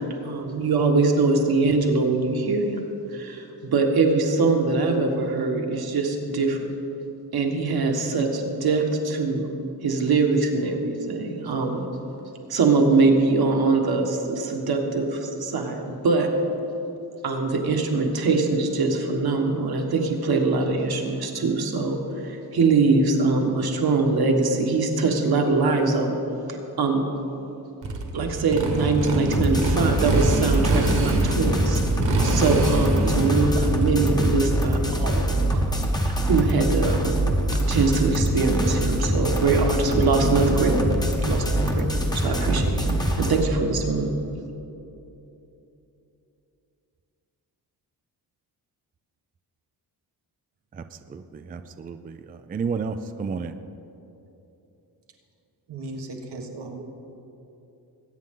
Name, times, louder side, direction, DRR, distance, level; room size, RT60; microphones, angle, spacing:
voice 1, 0.0-2.8 3.1-6.7 7.3-9.4 9.8-11.8 12.5-16.3 17.2-26.2 26.8-27.0 28.1-31.8 32.2-35.7 36.2-37.2 37.7-40.9 41.2-41.9 42.1-44.1, right 3 dB, 65° right, 1.6 m, -23 dB
Motorcycle, 27.8-36.4, right 2 dB, 50° right, 1.4 m, -26 dB
sound 1, 29.3-43.4, equal, 10° left, 0.9 m, -24 dB
voice 2, 50.7-53.6, right 5 dB, 25° right, 0.3 m, -32 dB
voice 3, 55.7-56.8, right 2 dB, 80° right, 1.5 m, -36 dB
21.0 x 9.0 x 3.8 m
wide cardioid pair, 145°, 40 cm